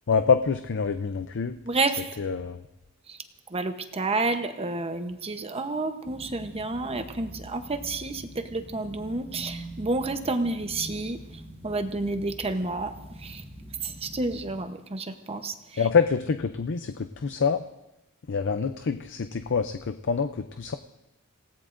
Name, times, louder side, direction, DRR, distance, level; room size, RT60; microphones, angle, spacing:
voice 1, 0.1-1.6 2.2-2.6 15.8-17.6 18.3-20.7, left 5 dB, 60° left, 9 dB, 0.5 m, -26 dB
voice 2, 1.6-2.2 3.1-3.2 3.5-11.2 11.6-13.4 13.8-15.8, right 3 dB, 30° right, 8 dB, 0.9 m, -30 dB
sound 1, 6.0-14.6, right 1 dB, 10° left, 1.7 m, -44 dB
27.0 x 17.5 x 2.6 m, 0.95 s
head